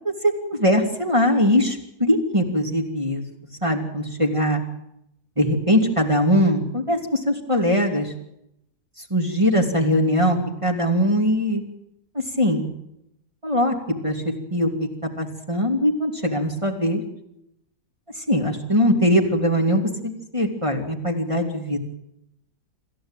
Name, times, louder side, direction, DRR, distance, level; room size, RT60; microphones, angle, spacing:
voice 1, 0.6-3.2 3.6-4.6 5.4-8.1 9.1-11.6 12.4-12.7 13.4-14.9 15.2-17.0 18.1-21.8, equal, 20° right, 1 dB, 3.1 m, -21 dB
27.5 x 14.0 x 9.2 m, 0.80 s
omnidirectional pair, 1.7 m